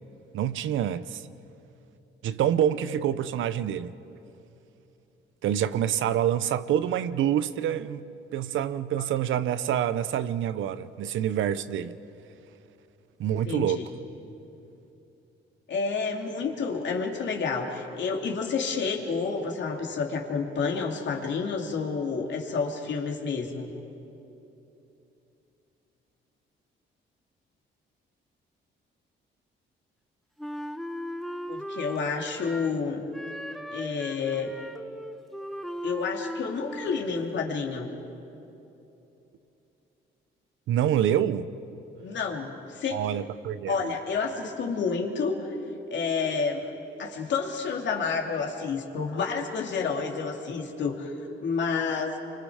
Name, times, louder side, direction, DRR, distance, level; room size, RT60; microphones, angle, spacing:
voice 1, 0.3-1.2 2.2-4.0 5.4-8.1 8.3-12.0 13.2-13.9 40.7-41.5 42.9-43.8, right 10 dB, 80° right, 0.8 m, -26 dB
voice 2, 13.3-13.9 15.7-23.7 31.5-33.0 33.7-34.5 35.8-37.9 42.0-43.0 43.7-45.5 45.9-46.7 47.0-51.1 51.4-52.2, left 5 dB, 65° left, 2.8 m, -29 dB
Wind instrument woodwind instrument, 30.4-32.8 33.1-37.2, equal, ahead, 0.9 m, -38 dB
28.0 x 24.5 x 5.0 m
cardioid pair, 90°, 20 cm